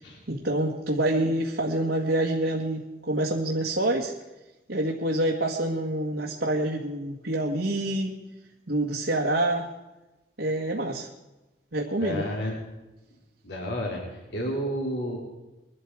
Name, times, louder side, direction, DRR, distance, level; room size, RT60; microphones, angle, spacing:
voice 1, 0.3-4.1 4.7-8.2 8.7-9.7 10.4-11.1 11.7-12.2, right 1 dB, 75° right, -3 dB, 1.9 m, -27 dB
voice 2, 12.0-12.6 13.4-15.2, equal, 75° left, -2 dB, 3.7 m, -31 dB
22.5 x 12.5 x 4.8 m, 1.0 s
head